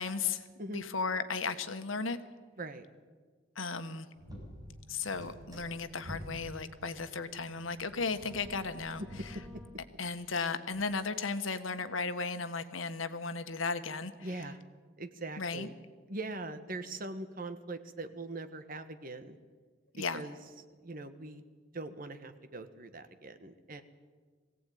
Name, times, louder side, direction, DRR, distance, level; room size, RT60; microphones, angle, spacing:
voice 1, 0.0-2.2 3.5-4.1 4.9-9.4 10.0-14.1 15.4-15.7 19.9-20.2, left 4 dB, 85° left, 10 dB, 1.4 m, -35 dB
sound 1, 4.1-9.7, equal, 20° right, 6.2 m, -49 dB
voice 2, 14.2-14.6 15.0-15.8 16.1-19.4 20.1-20.4 20.8-21.4 21.7-23.8, right 2 dB, 45° right, 9 dB, 1.4 m, -42 dB
21.5 x 16.5 x 9.3 m, 1.5 s
head